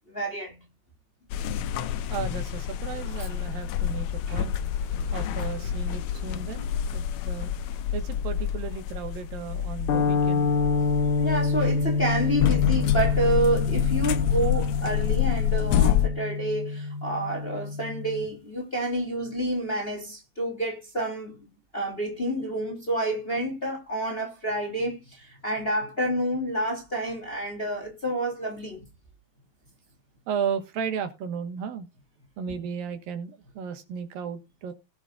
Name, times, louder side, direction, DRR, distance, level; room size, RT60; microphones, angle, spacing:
voice 1, 0.1-0.5 3.2-3.3 4.3-4.4 11.2-21.4 21.7-28.8, right 1 dB, 15° left, 2.4 m, -29 dB
sound 1, 1.3-16.1, left 10 dB, 85° left, 1.6 m, -28 dB
voice 2, 2.1-4.5 5.1-7.5 7.9-10.5 30.3-31.9 32.4-34.7, right 7 dB, 70° right, 3.0 m, -34 dB
sound 2, 9.9-18.3, left 4 dB, 65° left, 2.9 m, -27 dB
18.5 x 7.7 x 2.5 m
omnidirectional pair, 4.3 m